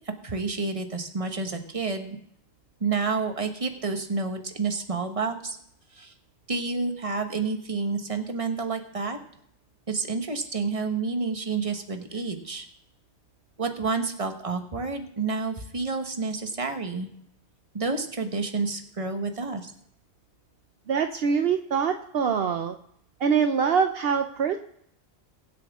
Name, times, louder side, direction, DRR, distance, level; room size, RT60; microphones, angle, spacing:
voice 1, 0.0-2.2 2.8-5.6 5.9-6.1 6.5-9.2 9.9-12.7 13.6-17.1 17.7-19.7, right 4 dB, 30° right, 6 dB, 1.3 m, -29 dB
voice 2, 20.9-22.8 23.2-24.6, right 6 dB, 65° right, 7 dB, 0.9 m, -24 dB
23.0 x 7.7 x 3.6 m, 0.71 s
omnidirectional pair, 1.1 m